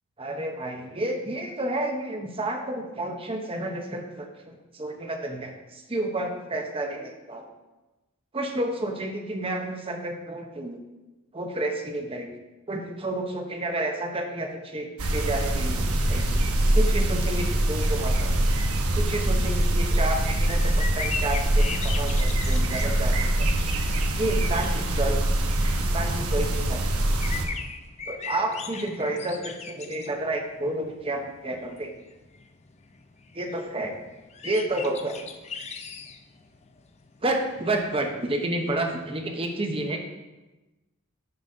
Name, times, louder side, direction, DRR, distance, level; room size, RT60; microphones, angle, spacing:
voice 1, 0.2-7.5 8.3-10.8 11.3-12.3 12.7-16.4 16.7-18.3 18.9-23.5 24.2-25.3 25.9-26.9 28.1-31.9 33.3-34.0 34.4-35.2 37.2-40.0, right 1 dB, 25° right, 3 dB, 0.8 m, -30 dB
sound 1, 15.0-27.5, right 1 dB, 85° right, 1.0 m, -24 dB
sound 2, 20.4-38.4, left 5 dB, 30° left, 0.5 m, -40 dB
9.7 x 4.1 x 5.2 m, 1.1 s
head